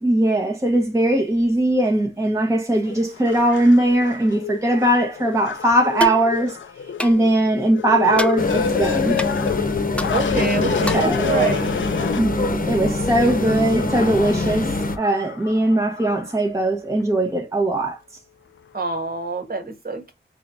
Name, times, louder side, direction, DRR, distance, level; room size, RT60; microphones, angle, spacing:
voice 1, 0.0-6.6 7.0-9.2 10.9-11.5 12.2-18.0, right 1 dB, 15° right, 0.9 m, -20 dB
sound 1, 2.9-12.8 13.4-16.4 17.0-17.1, left 7 dB, 85° left, 0.5 m, -29 dB
sound 2, 6.0-6.2 7.0-7.2 8.2-8.4 9.2-9.3 10.0-10.1 10.9-11.1, left 1 dB, 5° left, 0.5 m, -26 dB
sound 3, 8.4-15.0, left 2 dB, 45° left, 0.9 m, -24 dB
voice 2, 10.1-11.8 18.7-20.1, right 3 dB, 50° right, 1.4 m, -26 dB
4.8 x 3.0 x 2.5 m
wide cardioid pair, 75°, 19 cm